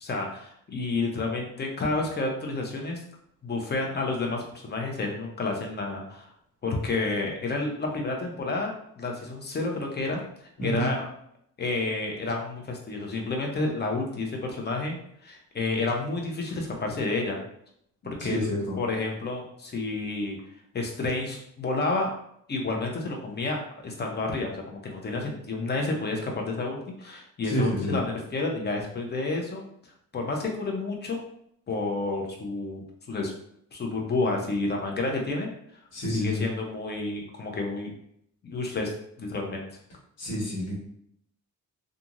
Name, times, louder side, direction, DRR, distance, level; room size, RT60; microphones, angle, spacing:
voice 1, 0.0-3.0 3.4-6.3 6.6-10.2 10.6-11.0 11.6-15.0 15.2-17.4 18.0-18.5 18.8-20.4 20.7-22.1 22.5-29.7 30.1-31.2 31.7-33.3 33.7-35.5 36.1-37.9 38.4-38.9 39.2-39.6, left 3 dB, 35° left, 1 dB, 0.8 m, -30 dB
voice 2, 10.6-10.9 18.2-18.8 27.4-28.0 35.9-36.4 40.2-40.7, equal, 55° left, -4 dB, 1.5 m, -29 dB
2.9 x 2.5 x 2.5 m, 0.71 s
cardioid pair, 90°, 30 cm